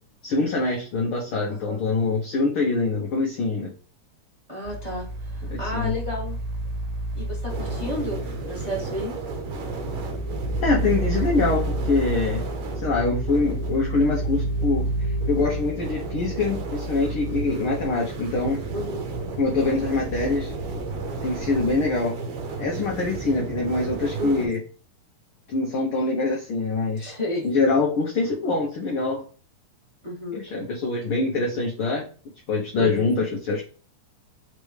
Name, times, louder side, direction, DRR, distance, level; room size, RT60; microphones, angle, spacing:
voice 1, 0.2-3.7 5.4-5.9 10.6-12.4 12.8-18.6 19.4-20.5 21.2-22.1 22.6-24.6 25.5-27.1 27.4-29.2 30.3-32.1 32.5-33.6, left 3 dB, 75° left, -1 dB, 1.2 m, -24 dB
voice 2, 1.5-1.8 4.5-6.4 7.1-9.1 18.7-19.1 24.2-24.5 27.0-27.5 30.0-30.4 32.8-33.1, left 1 dB, 20° right, -4 dB, 1.2 m, -32 dB
sound 1, 4.6-21.9, right 1 dB, 85° right, 2.2 m, -31 dB
sound 2, 7.5-24.5, right 4 dB, 70° right, 2.0 m, -33 dB
5.1 x 3.3 x 3.2 m, 0.38 s
omnidirectional pair, 3.7 m